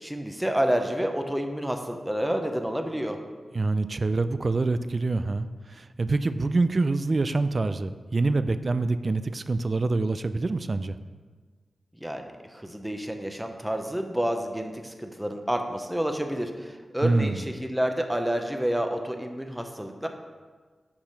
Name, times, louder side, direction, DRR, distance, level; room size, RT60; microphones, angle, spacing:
voice 1, 0.0-3.2 12.0-20.1, equal, 5° right, 5 dB, 0.7 m, -29 dB
voice 2, 3.5-11.0 17.0-17.4, right 3 dB, 40° right, 12 dB, 0.3 m, -26 dB
7.2 x 4.9 x 5.5 m, 1.5 s
wide cardioid pair, 125°, 0 cm